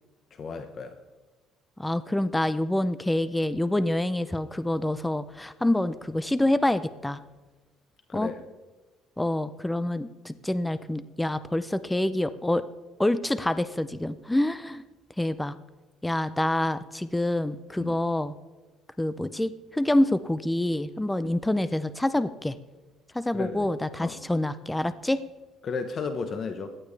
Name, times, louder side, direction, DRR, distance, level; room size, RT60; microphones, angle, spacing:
voice 1, 0.3-1.0 8.1-8.4 17.8-17.9 21.2-21.4 23.3-23.7 24.0-24.2 25.6-26.7, left 5 dB, 40° left, 8 dB, 1.0 m, -34 dB
voice 2, 1.8-7.2 8.1-8.3 9.2-12.6 13.0-14.8 15.2-15.5 16.0-18.3 19.0-22.6 23.1-25.2, left 1 dB, 5° left, 13 dB, 0.5 m, -27 dB
17.5 x 12.0 x 3.3 m, 1.3 s
cardioid pair, 125°, 0 cm